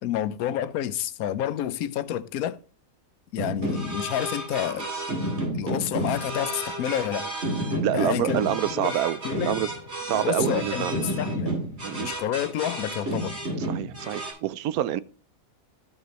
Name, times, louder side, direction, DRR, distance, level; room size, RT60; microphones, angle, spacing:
voice 1, 0.0-2.6 3.3-4.9 5.5-7.3 7.9-8.4 8.7-9.0 9.2-9.6 10.1-11.6 11.9-13.3, left 11 dB, 80° left, 1.1 m, -29 dB
sound 1, 3.4-14.3, right 1 dB, 50° right, 2.9 m, -31 dB
voice 2, 7.7-9.7 10.0-11.1 11.8-12.1 13.6-15.0, right 12 dB, 85° right, 1.1 m, -27 dB
13.0 x 5.6 x 2.9 m
omnidirectional pair, 1.5 m